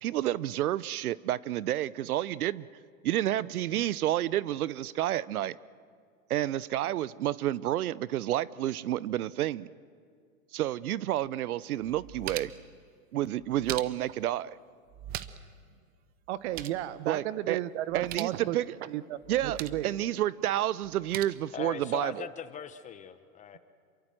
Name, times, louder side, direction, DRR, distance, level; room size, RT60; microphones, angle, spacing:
voice 1, 0.0-2.7 3.0-5.6 6.3-9.7 10.5-12.5 13.1-14.6 17.1-17.6 17.9-18.8 19.3-19.6 19.8-22.3, right 13 dB, 80° right, 20 dB, 0.8 m, -30 dB
sound 1, 11.2-11.3 11.8-12.7 13.4-14.2 14.9-15.6 15.8-15.9 16.3-16.8 17.9-18.4 19.2-19.9 20.8-21.2, right 12 dB, 20° right, 0.6 m, -41 dB
voice 2, 16.3-19.2 19.4-19.9, right 14 dB, 50° right, 16 dB, 1.1 m, -34 dB
voice 3, 21.5-23.6, left 8 dB, 15° left, 11 dB, 0.9 m, -40 dB
27.5 x 23.0 x 7.6 m, 2.1 s
hypercardioid pair, 140°, 43 cm